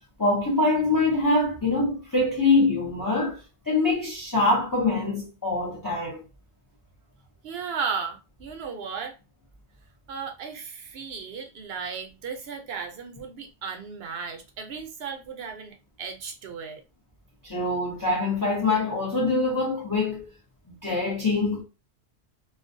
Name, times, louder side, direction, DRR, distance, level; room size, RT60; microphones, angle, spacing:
voice 1, 0.2-3.4 3.7-6.2 17.4-20.2 20.8-21.6, left 2 dB, 25° left, 0.5 m, -24 dB
voice 2, 7.4-9.1 10.1-16.8, right 6 dB, 65° right, 0.8 m, -35 dB
2.4 x 2.2 x 2.6 m
omnidirectional pair, 1.2 m